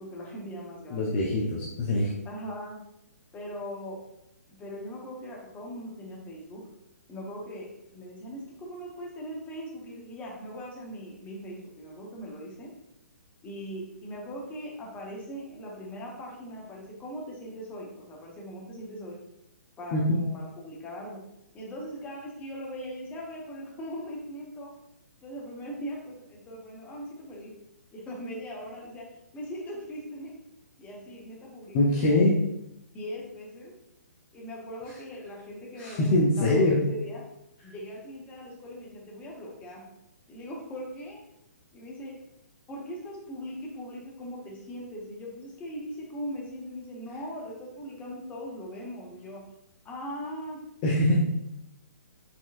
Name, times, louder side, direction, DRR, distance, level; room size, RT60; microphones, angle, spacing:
voice 1, 0.0-1.2 2.2-2.8 3.3-4.0 4.6-6.6 7.1-12.7 13.4-19.2 19.8-21.2 21.5-24.7 25.2-27.5 27.9-29.0 29.3-30.3 30.8-32.2 32.9-33.7 34.3-36.1 36.4-37.2 37.6-39.8 40.3-41.2 41.7-42.1 42.7-49.4 49.8-50.6, equal, 15° left, -3 dB, 0.9 m, -40 dB
voice 2, 0.9-2.1 19.9-20.2 31.7-32.3 35.8-36.8 50.8-51.2, left 1 dB, 30° left, -3 dB, 0.6 m, -23 dB
4.2 x 3.6 x 2.5 m, 0.84 s
figure-of-eight pair, 135°, 9 cm